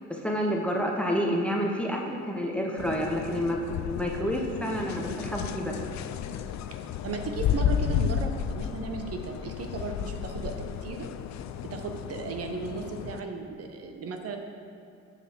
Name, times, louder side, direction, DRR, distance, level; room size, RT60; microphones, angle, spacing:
voice 1, 0.1-5.7, equal, 5° left, 0 dB, 0.8 m, -29 dB
sound 1, 2.8-13.2, left 8 dB, 60° left, 0.4 m, -32 dB
voice 2, 7.0-10.5 10.8-11.1 11.7-14.4, right 4 dB, 50° right, 4 dB, 0.9 m, -35 dB
7.5 x 6.9 x 6.0 m, 2.8 s
cardioid pair, 155°, 31 cm